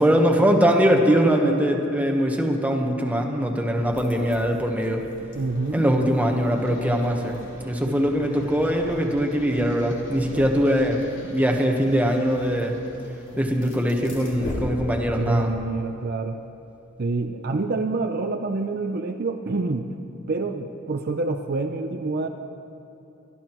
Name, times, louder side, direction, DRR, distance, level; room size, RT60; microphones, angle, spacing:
voice 1, 0.0-5.0 5.7-11.0 11.3-12.8 13.4-15.5, equal, 10° right, 2 dB, 1.1 m, -22 dB
sound 1, 3.7-15.3, equal, 65° left, 2.7 m, -40 dB
voice 2, 5.3-5.9 7.9-8.0 10.3-10.6 15.2-16.4 17.0-19.9 20.3-22.3, right 3 dB, 50° right, 6 dB, 0.5 m, -27 dB
25.0 x 12.5 x 3.0 m, 2.7 s
head